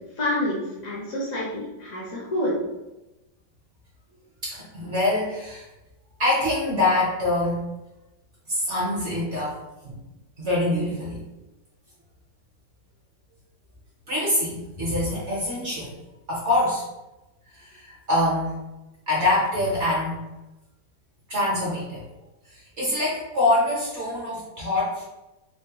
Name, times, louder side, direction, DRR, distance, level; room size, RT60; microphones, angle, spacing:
voice 1, 0.2-2.6, left 1 dB, 55° left, -6 dB, 1.2 m, -28 dB
voice 2, 4.4-5.7 6.2-7.6 8.5-9.6 9.8-10.0 10.4-11.2 14.1-15.9 16.3-16.8 17.5-18.6 19.1-20.3 21.3-22.0 22.5-25.0, left 2 dB, 50° right, -6 dB, 0.9 m, -25 dB
4.2 x 2.0 x 2.9 m, 1.0 s
omnidirectional pair, 2.0 m